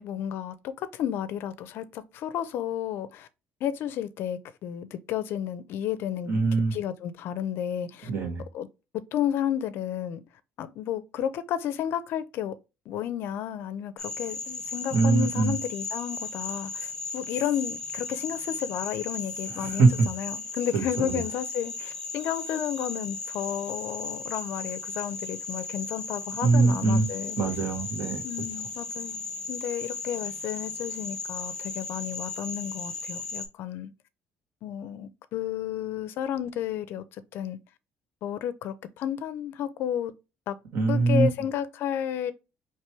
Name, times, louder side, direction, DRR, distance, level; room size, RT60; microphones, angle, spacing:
voice 1, 0.0-3.3 3.6-6.4 6.7-8.1 8.5-8.7 8.9-10.2 10.6-12.5 12.9-27.4 28.2-33.9 34.6-37.0 37.3-37.6 38.2-40.1 40.5-40.6 40.9-42.3, left 10 dB, 60° left, 0.5 m, -32 dB
voice 2, 6.3-6.7 8.0-8.4 14.9-15.6 19.6-20.1 20.7-21.2 26.4-27.1 27.4-28.2 40.7-41.3, right 3 dB, 55° right, 1.5 m, -23 dB
Frog, 14.0-33.5, left 3 dB, 15° left, 1.1 m, -36 dB
4.6 x 3.0 x 2.9 m
cardioid pair, 170°, 4 cm